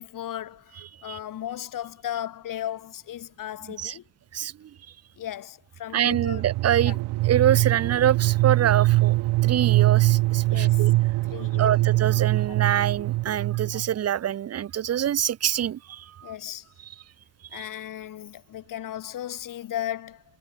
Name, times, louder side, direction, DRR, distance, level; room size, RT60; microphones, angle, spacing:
voice 1, 0.0-4.0 5.2-6.4 6.8-7.0 10.5-10.9 11.3-11.8 13.7-13.8 16.2-16.7 17.5-20.2, left 11 dB, 55° left, 1.4 m, -36 dB
voice 2, 4.3-4.7 5.9-6.9 7.2-9.2 9.4-10.9 11.6-16.3 17.5-17.6, right 10 dB, 40° right, 0.7 m, -25 dB
sound 1, 6.1-13.9, right 18 dB, 85° right, 1.3 m, -23 dB
cardioid pair, 100°, 39 cm